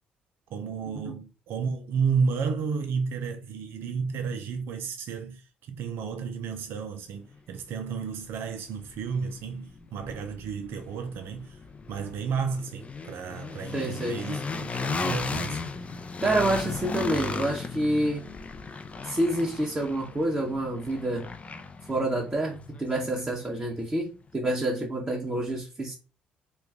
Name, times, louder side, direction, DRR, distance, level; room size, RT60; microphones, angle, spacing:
voice 1, 0.5-11.6 11.9-15.6, right 5 dB, 70° right, 0.5 m, -32 dB
sound 1, 7.3-7.4 7.9-23.8, left 4 dB, 35° left, 0.5 m, -36 dB
voice 2, 13.7-14.2 16.2-18.3 19.0-21.3 21.9-25.9, right 1 dB, 25° right, 1.2 m, -28 dB
3.1 x 2.3 x 3.5 m
supercardioid pair, 65°, 4 cm